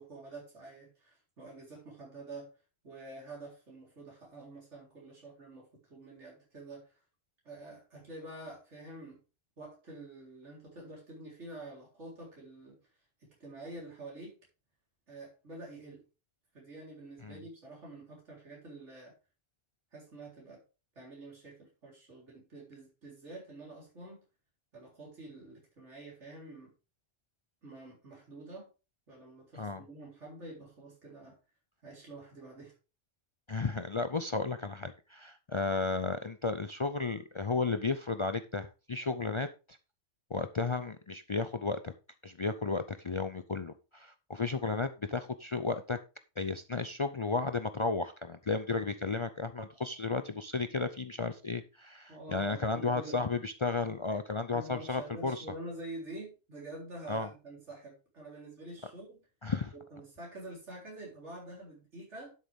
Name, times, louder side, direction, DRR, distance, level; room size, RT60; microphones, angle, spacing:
voice 1, 0.0-2.5 2.8-7.0 7.4-9.2 9.6-12.8 13.2-14.4 15.1-16.0 16.5-19.1 19.9-20.6 21.0-24.2 24.7-26.7 27.6-28.7 29.1-31.4 31.8-32.7 52.1-53.3 54.5-59.2 59.7-62.3, right 2 dB, 70° right, -3 dB, 4.1 m, -47 dB
voice 2, 33.5-39.5 40.3-41.9 42.2-46.0 46.4-55.4 57.1-57.3 59.4-59.7, left 4 dB, 45° left, 10 dB, 0.4 m, -33 dB
11.5 x 6.5 x 3.5 m, 0.31 s
omnidirectional pair, 1.2 m